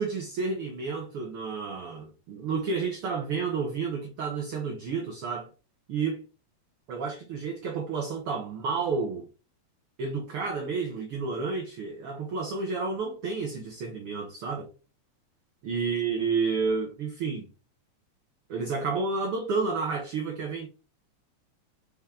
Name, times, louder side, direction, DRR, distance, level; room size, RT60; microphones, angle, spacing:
voice 1, 0.0-5.5 5.9-6.2 6.9-9.3 10.0-14.7 15.6-17.5 18.5-20.7, right 4 dB, 60° right, 1.7 m, -30 dB
5.9 x 5.2 x 3.7 m
omnidirectional pair, 3.3 m